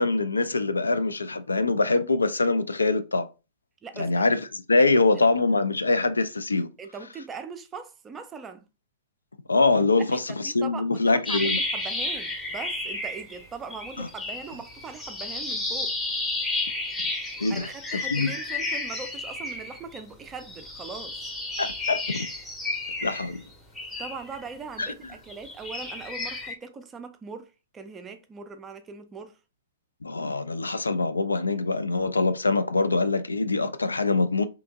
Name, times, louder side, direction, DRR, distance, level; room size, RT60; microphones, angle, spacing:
voice 1, 0.0-3.3 4.0-6.7 9.5-11.6 14.0-14.1 17.4-17.7 18.1-18.3 21.6-22.3 23.0-23.4 24.8-24.9 30.0-34.5, left 3 dB, 75° left, 0.3 m, -24 dB
voice 2, 3.8-4.2 4.8-5.1 6.8-8.7 10.0-15.9 17.5-21.2 24.0-29.4, right 5 dB, 15° right, 0.4 m, -40 dB
sound 1, 11.3-13.5 13.7-20.0 20.4-24.8 25.3-26.5, left 2 dB, 10° left, 0.7 m, -32 dB
2.8 x 2.5 x 3.4 m
figure-of-eight pair, 110°, 0 cm